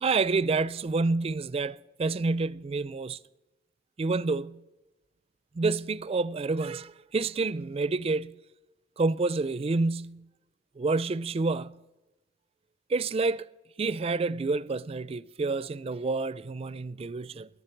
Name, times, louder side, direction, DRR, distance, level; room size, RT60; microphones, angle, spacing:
voice 1, 0.0-3.2 4.0-4.6 5.5-8.4 9.0-10.2 10.8-11.8 12.9-13.4 13.8-17.5, right 3 dB, 35° right, 0.4 m, -28 dB
17.5 x 11.0 x 4.5 m
head